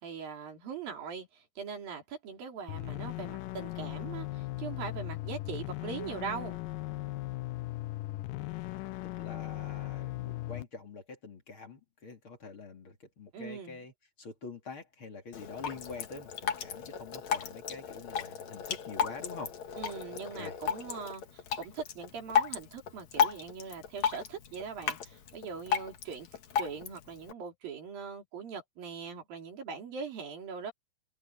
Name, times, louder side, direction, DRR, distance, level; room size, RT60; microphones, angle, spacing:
voice 1, 0.0-6.6 13.3-13.8 19.7-26.3 26.6-30.7, right 6 dB, 85° right, 5.5 m, -41 dB
sound 1, 2.7-10.6, left 18 dB, 80° left, 2.5 m, -38 dB
voice 2, 9.2-13.9 14.2-19.5 20.3-20.6, left 4 dB, 40° left, 3.2 m, -45 dB
Drip, 15.3-27.3, left 7 dB, 55° left, 2.8 m, -34 dB
omnidirectional pair, 4.0 m